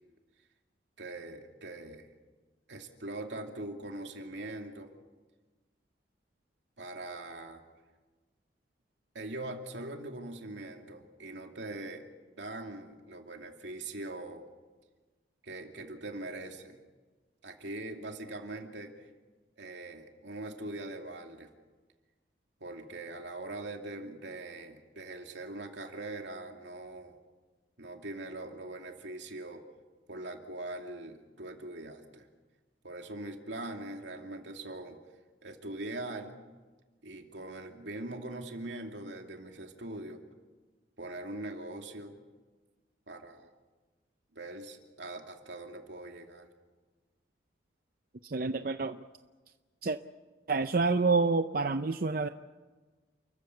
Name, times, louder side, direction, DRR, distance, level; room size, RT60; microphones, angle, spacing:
voice 1, 1.0-2.1 2.7-4.9 6.8-7.6 9.1-12.1 12.4-14.5 15.4-16.8 17.4-19.1 19.6-21.5 22.6-27.2 27.8-29.6 30.1-32.3 32.8-35.0 35.4-36.4 37.0-40.2 41.0-42.2 43.1-43.5 44.3-46.5, right 2 dB, 80° right, 3 dB, 2.6 m, -42 dB
voice 2, 48.2-49.0 49.8-50.0 50.5-52.3, right 4 dB, 50° right, 9 dB, 0.6 m, -28 dB
29.5 x 14.5 x 8.4 m, 1.3 s
head